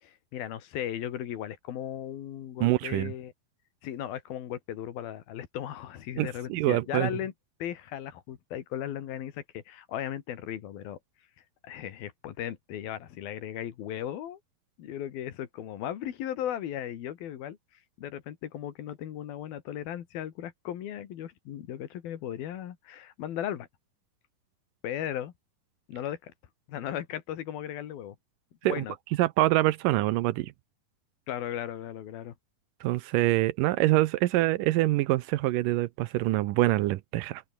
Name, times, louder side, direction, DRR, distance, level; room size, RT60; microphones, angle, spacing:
voice 1, 0.0-3.3 3.8-7.3 7.6-11.0 11.6-14.4 14.8-17.6 18.0-23.7 24.8-25.3 25.9-26.3 26.7-28.2 28.6-29.0 31.3-32.4, left 11 dB, 85° left, 3.8 m, -36 dB
voice 2, 2.6-3.1 6.2-7.1 28.6-28.9 29.2-30.5 32.8-37.4, right 17 dB, 75° right, 2.2 m, -25 dB
open air
omnidirectional pair, 4.1 m